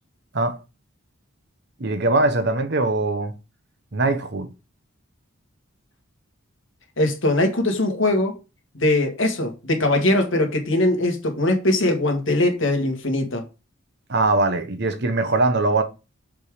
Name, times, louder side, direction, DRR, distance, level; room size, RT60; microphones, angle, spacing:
voice 1, 1.8-3.3 3.9-4.5 14.1-15.8, right 2 dB, 50° right, 0.9 m, -21 dB
voice 2, 7.0-8.3 8.8-13.4, left 1 dB, 65° left, 1.8 m, -21 dB
6.9 x 3.6 x 4.9 m
head